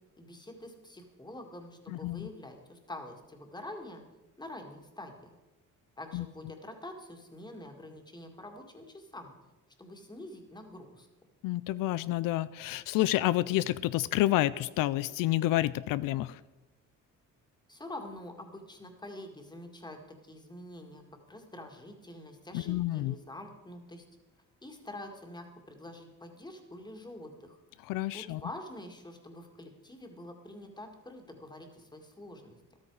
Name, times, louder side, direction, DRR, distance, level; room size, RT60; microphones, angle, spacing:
voice 1, 0.2-4.0 4.4-5.3 6.0-9.3 9.8-11.1 17.7-21.0 21.3-24.0 24.6-27.6 28.1-32.6, left 1 dB, 15° left, 4 dB, 2.1 m, -46 dB
voice 2, 11.4-16.4 22.5-23.1 27.9-28.4, left 16 dB, 85° left, 17 dB, 0.5 m, -29 dB
13.5 x 12.5 x 4.8 m, 1.1 s
cardioid pair, 110°, 32 cm